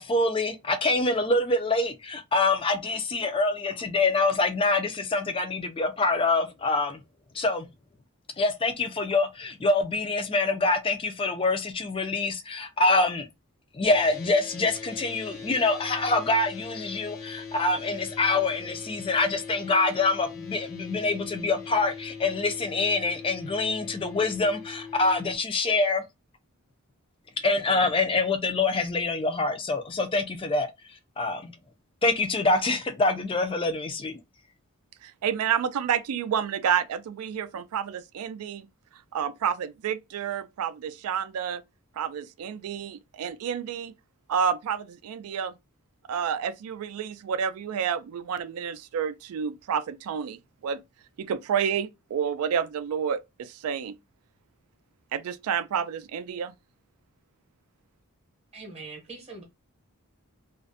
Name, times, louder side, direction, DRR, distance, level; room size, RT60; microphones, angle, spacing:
voice 1, 0.0-7.0 7.3-7.7 8.4-13.3 13.7-26.0 27.4-31.6 32.0-34.2, left 3 dB, 25° left, 0.3 m, -25 dB
sound 1, 13.8-25.4, left 5 dB, 90° left, 1.0 m, -41 dB
voice 2, 35.0-38.7 39.1-41.6 42.0-43.9 44.3-45.5 46.1-50.8 51.2-54.0 55.1-56.5, right 7 dB, 80° right, 0.3 m, -29 dB
voice 3, 58.5-59.4, right 3 dB, 25° right, 0.7 m, -42 dB
2.4 x 2.1 x 2.5 m
head